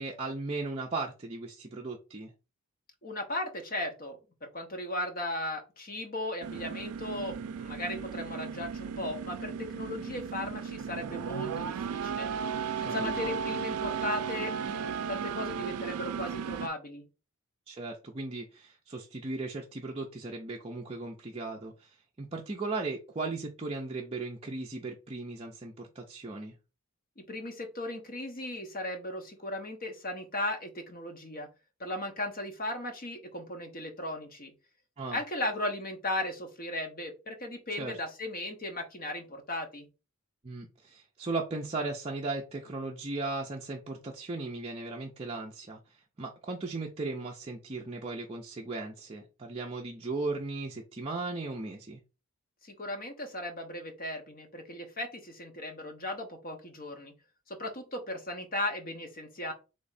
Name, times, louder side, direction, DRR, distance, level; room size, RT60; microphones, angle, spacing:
voice 1, 0.0-2.3 12.8-13.3 17.7-26.5 35.0-35.2 37.8-38.0 40.4-52.0, right 3 dB, 25° right, 0.5 m, -37 dB
voice 2, 3.0-12.3 12.8-17.0 27.2-31.5 31.8-34.5 35.1-39.9 52.6-57.1 57.5-59.5, left 1 dB, 40° left, 0.9 m, -37 dB
sound 1, 6.4-16.7, right 6 dB, 90° right, 0.4 m, -35 dB
3.4 x 3.2 x 4.0 m
head